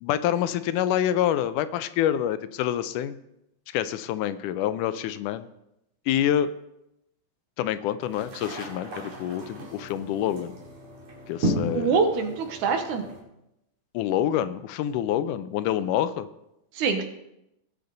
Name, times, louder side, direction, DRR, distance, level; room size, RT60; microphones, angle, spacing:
voice 1, 0.0-3.2 3.7-5.5 6.1-6.5 7.6-8.9 9.2-10.5 11.3-12.0 13.9-16.3, left 11 dB, 85° left, 13 dB, 2.1 m, -26 dB
sound 1, 8.0-13.2, equal, 55° right, 3.3 m, -34 dB
voice 2, 11.7-13.0 16.8-17.0, right 5 dB, 75° right, 7 dB, 2.4 m, -24 dB
18.5 x 6.7 x 3.9 m, 0.84 s
omnidirectional pair, 3.6 m